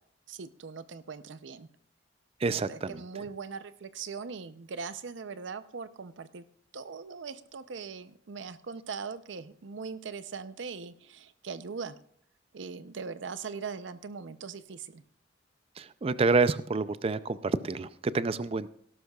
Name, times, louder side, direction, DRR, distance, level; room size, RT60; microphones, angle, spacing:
voice 1, 0.3-1.7 2.4-6.4 6.7-12.0 12.5-15.0, right 5 dB, 80° right, 13 dB, 0.6 m, -40 dB
voice 2, 2.4-2.9 15.8-18.7, right 3 dB, 30° right, 15 dB, 0.4 m, -28 dB
17.5 x 12.0 x 2.3 m, 0.63 s
head